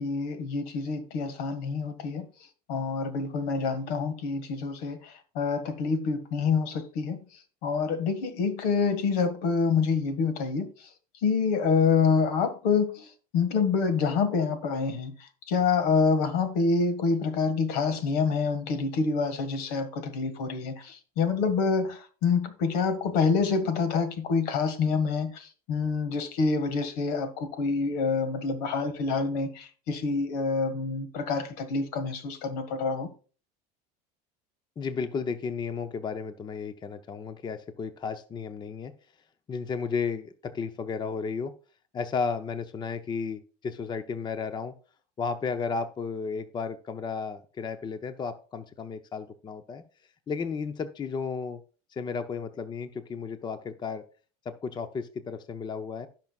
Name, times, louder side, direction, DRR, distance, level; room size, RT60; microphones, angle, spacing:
voice 1, 0.0-2.3 2.7-7.2 7.6-10.7 11.2-13.1 13.3-15.1 15.5-33.1, left 5 dB, 75° left, 1.8 m, -27 dB
voice 2, 34.8-38.9 39.5-41.5 41.9-44.7 45.2-49.8 50.3-51.6 51.9-54.0 54.4-56.1, left 5 dB, 20° left, 0.7 m, -33 dB
16.0 x 5.9 x 2.4 m
supercardioid pair, 125°, 20 cm